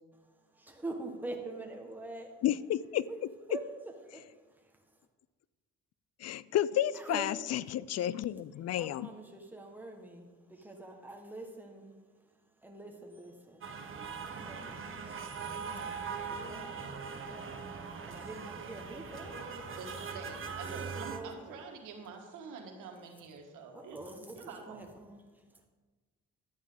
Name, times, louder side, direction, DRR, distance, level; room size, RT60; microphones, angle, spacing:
voice 1, 0.1-2.4 3.1-3.2 3.5-3.6 4.0-5.1 6.9-7.3 8.8-19.8 20.1-20.2 20.5-21.6 23.7-25.7, right 2 dB, 5° right, 1 dB, 1.6 m, -46 dB
voice 2, 2.4-3.1 6.2-9.1, left 11 dB, 55° left, 18 dB, 0.4 m, -31 dB
sound 1, 13.6-21.2, right 5 dB, 45° right, 1.2 m, -41 dB
voice 3, 19.8-24.8, right 5 dB, 90° right, 3 dB, 1.6 m, -47 dB
11.5 x 8.4 x 3.9 m, 1.3 s
cardioid pair, 90°, 30 cm